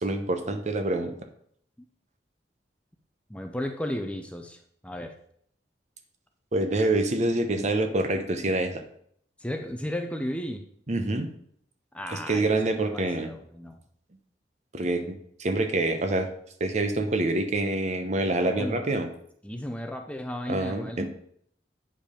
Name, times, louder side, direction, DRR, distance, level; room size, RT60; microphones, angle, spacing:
voice 1, 0.0-1.1 6.5-8.8 10.9-11.3 12.1-13.3 14.7-16.3 16.6-19.1 20.5-21.1, right 2 dB, 40° right, 7 dB, 0.9 m, -26 dB
voice 2, 3.3-5.2 9.4-10.6 11.9-12.6 12.8-13.8 18.4-18.9 19.4-21.1, left 1 dB, 5° left, 5 dB, 0.6 m, -34 dB
8.8 x 5.3 x 5.0 m, 0.66 s
head